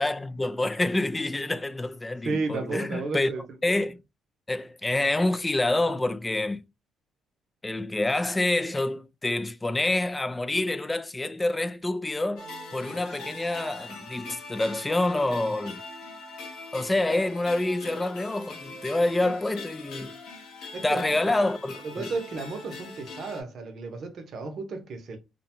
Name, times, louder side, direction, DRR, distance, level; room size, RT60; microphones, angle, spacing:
voice 1, 0.0-3.3 3.6-4.0 4.5-6.6 7.6-15.8 16.7-20.1 20.8-22.1, left 2 dB, 20° left, 0.3 m, -27 dB
voice 2, 2.2-3.4 19.2-19.3 20.7-21.0 21.9-25.2, right 3 dB, 60° right, 0.7 m, -33 dB
sound 1, 12.4-23.4, left 3 dB, 75° left, 0.7 m, -42 dB
2.6 x 2.1 x 2.9 m
supercardioid pair, 70°, 0 cm